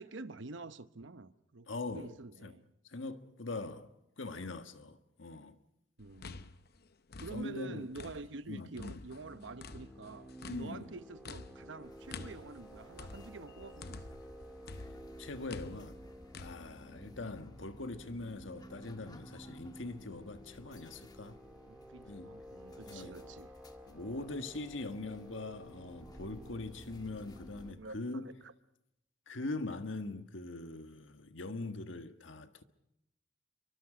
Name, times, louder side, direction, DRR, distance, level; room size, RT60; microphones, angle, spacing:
voice 1, 0.0-2.6 6.0-6.5 7.2-14.2 16.9-17.1 21.7-23.5 27.8-28.5, right 3 dB, 70° right, 0.9 m, -47 dB
voice 2, 1.7-2.1 2.4-2.5 2.8-3.9 4.2-5.6 7.3-7.9 8.5-9.0 10.5-10.9 14.8-14.9 15.2-16.0 16.4-21.4 22.1-22.3 22.9-23.1 23.9-28.3 29.3-32.6, left 2 dB, 80° left, 1.5 m, -42 dB
sound 1, 6.0-8.4 8.8-14.3 14.7-16.5, left 3 dB, 55° left, 0.8 m, -48 dB
sound 2, 9.2-27.7, equal, 5° right, 3.1 m, -53 dB
sound 3, 11.8-27.7, left 1 dB, 20° left, 1.5 m, -59 dB
28.5 x 24.0 x 5.1 m
head